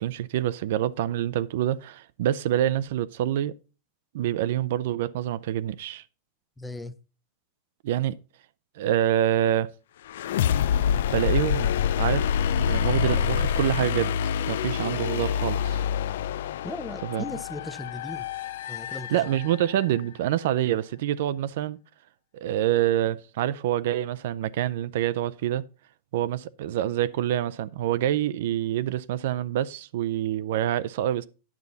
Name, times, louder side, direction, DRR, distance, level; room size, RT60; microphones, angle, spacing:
voice 1, 0.0-3.5 4.1-6.0 7.8-8.1 8.8-9.7 11.1-11.7 12.0-12.3 12.6-14.1 14.5-15.8 17.0-17.2 19.1-21.8 22.3-25.6 26.1-31.3, right 12 dB, 65° right, 0.4 m, -26 dB
voice 2, 6.6-6.9 16.6-18.3 18.7-19.2, left 2 dB, 5° left, 0.5 m, -37 dB
sound 1, 10.1-19.8, left 8 dB, 75° left, 0.4 m, -26 dB
9.6 x 7.0 x 4.0 m
supercardioid pair, 165°, 0 cm